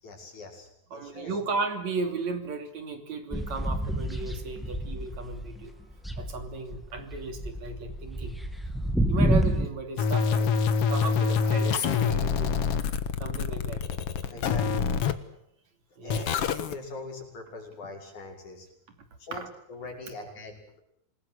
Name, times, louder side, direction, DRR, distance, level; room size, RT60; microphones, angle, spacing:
voice 1, 0.0-1.4 14.3-14.9 16.0-18.7 19.2-19.4 19.7-20.8, left 3 dB, 75° left, 1 dB, 7.3 m, -42 dB
voice 2, 0.9-5.7 6.2-8.4 9.1-10.5 10.8-12.6 13.2-13.8 16.0-16.4 19.3-19.5, right 4 dB, 65° right, 7 dB, 4.1 m, -35 dB
sound 1, 3.3-5.6 5.9-9.7, equal, ahead, 1.8 m, -28 dB
sound 2, 10.0-15.1 16.1-16.7, left 6 dB, 55° left, 2.1 m, -26 dB
27.0 x 20.5 x 8.1 m, 0.73 s
omnidirectional pair, 3.5 m